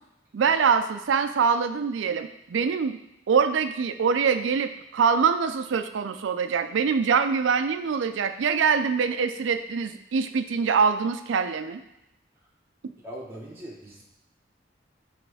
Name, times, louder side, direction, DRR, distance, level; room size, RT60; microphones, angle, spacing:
voice 1, 0.3-3.0 3.3-11.8, right 6 dB, 90° right, 10 dB, 0.4 m, -24 dB
voice 2, 13.0-14.0, equal, 10° right, -5 dB, 0.9 m, -40 dB
6.2 x 3.2 x 4.8 m, 0.88 s
head